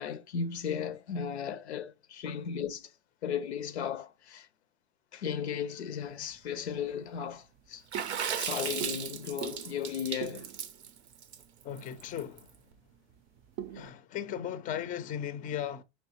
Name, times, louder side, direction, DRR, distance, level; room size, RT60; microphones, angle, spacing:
voice 1, 0.0-2.9 3.2-4.5 5.1-7.8 8.4-10.5, left 7 dB, 85° left, 0.5 m, -35 dB
sound 1, 6.0-13.9, right 11 dB, 40° right, 0.5 m, -46 dB
Water / Splash splatter, 7.9-12.4, right 8 dB, 85° right, 0.6 m, -36 dB
voice 2, 11.6-12.6 13.7-15.8, left 9 dB, 25° left, 0.4 m, -37 dB
5.3 x 3.1 x 2.9 m
hypercardioid pair, 90°, 32 cm